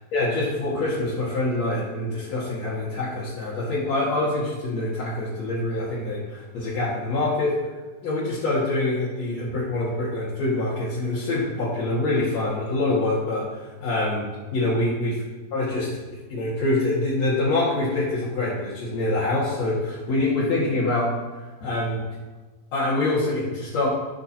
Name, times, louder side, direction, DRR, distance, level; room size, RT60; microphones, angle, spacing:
voice 1, 0.1-7.6 8.0-14.3 14.5-15.1 15.5-16.0 16.3-21.1 21.6-22.0 22.7-23.9, left 2 dB, 60° left, -9 dB, 3.0 m, -25 dB
15.0 x 6.3 x 2.9 m, 1.3 s
omnidirectional pair, 3.5 m